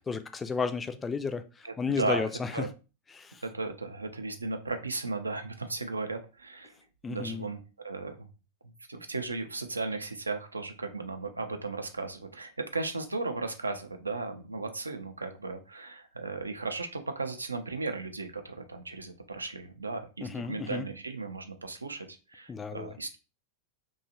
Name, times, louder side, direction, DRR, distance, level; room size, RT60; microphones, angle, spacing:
voice 1, 0.0-2.7 3.1-3.4 7.0-7.5 20.2-20.9 22.5-23.0, left 5 dB, 15° left, 0.3 m, -33 dB
voice 2, 1.6-2.7 3.4-6.7 7.1-8.3 8.6-23.2, right 3 dB, 80° right, 0.4 m, -36 dB
2.7 x 2.3 x 2.7 m
figure-of-eight pair, 90°, 0 cm